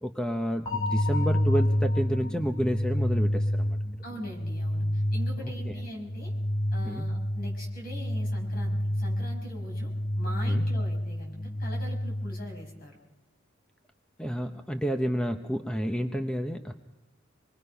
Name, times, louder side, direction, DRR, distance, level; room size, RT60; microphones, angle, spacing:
voice 1, 0.0-3.8 5.4-5.7 6.8-7.1 10.5-10.6 14.2-16.7, equal, 5° left, 6 dB, 0.7 m, -30 dB
sound 1, 0.7-12.6, left 1 dB, 20° left, 1.3 m, -29 dB
voice 2, 4.0-6.3 6.7-9.9 10.2-13.0, equal, 50° left, 0 dB, 5.6 m, -42 dB
25.5 x 21.0 x 5.6 m, 1.1 s
head